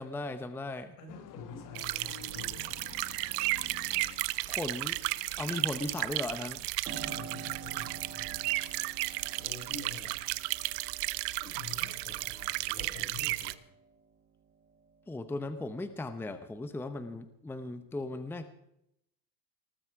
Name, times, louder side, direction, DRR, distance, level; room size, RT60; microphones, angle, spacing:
voice 1, 0.0-1.0 4.5-5.0 5.4-6.7 15.1-18.5, left 2 dB, 5° left, 11 dB, 0.8 m, -37 dB
voice 2, 1.0-2.8 6.9-8.5 9.2-10.2 11.4-13.6, left 4 dB, 75° left, 4 dB, 5.5 m, -47 dB
sound 1, 1.1-6.2, left 9 dB, 40° left, 1.3 m, -51 dB
sound 2, 1.8-13.5, right 21 dB, 55° right, 0.8 m, -34 dB
Piano, 6.9-15.3 15.7-16.7, right 7 dB, 25° right, 1.5 m, -50 dB
19.0 x 14.0 x 4.7 m, 0.80 s
supercardioid pair, 130°, 49 cm